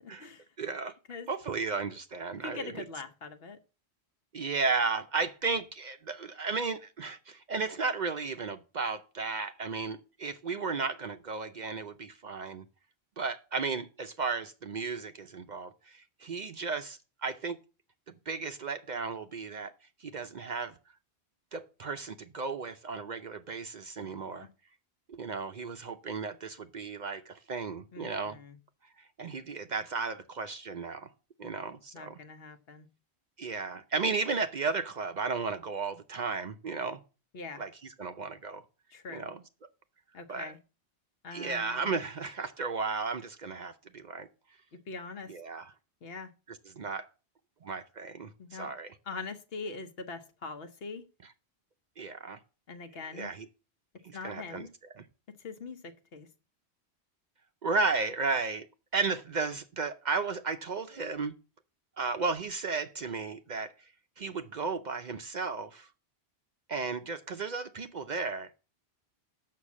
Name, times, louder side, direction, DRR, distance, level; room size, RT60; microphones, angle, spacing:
voice 1, 0.0-0.5 1.1-1.3 2.3-3.6 24.0-24.5 27.9-28.6 31.9-32.9 37.3-37.6 38.9-39.3 40.1-40.6 41.2-41.9 44.7-45.3 46.0-46.3 48.4-48.7 49.1-51.0 52.7-53.3 54.1-54.7 55.3-56.3, left 4 dB, 65° left, 1.1 m, -43 dB
voice 2, 0.6-1.0 1.3-2.8 4.3-12.6 13.2-17.6 18.3-19.7 20.0-20.8 21.5-24.5 25.1-28.4 29.0-31.1 31.4-32.2 33.4-37.0 37.6-38.6 39.1-39.4 40.3-40.5 41.3-44.3 45.3-45.7 46.5-47.1 47.6-49.0 52.0-52.4 53.1-53.5 54.0-54.7 55.0-55.1 57.6-58.7 58.9-61.3 62.0-63.7 64.2-65.9 66.7-68.6, right 4 dB, 50° right, 0.6 m, -34 dB
6.6 x 6.0 x 7.3 m
omnidirectional pair, 1.1 m